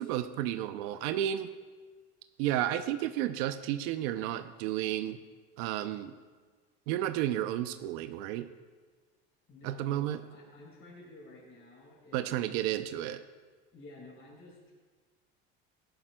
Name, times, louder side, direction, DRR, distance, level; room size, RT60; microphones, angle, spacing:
voice 1, 0.0-1.5 2.4-5.2 5.6-6.1 6.9-8.5 9.6-10.2 12.1-13.2, right 12 dB, 80° right, 10 dB, 0.6 m, -32 dB
voice 2, 9.5-12.5 13.7-14.7, left 2 dB, 45° left, -2 dB, 3.5 m, -52 dB
14.0 x 11.5 x 2.2 m, 1.4 s
supercardioid pair, 105°, 29 cm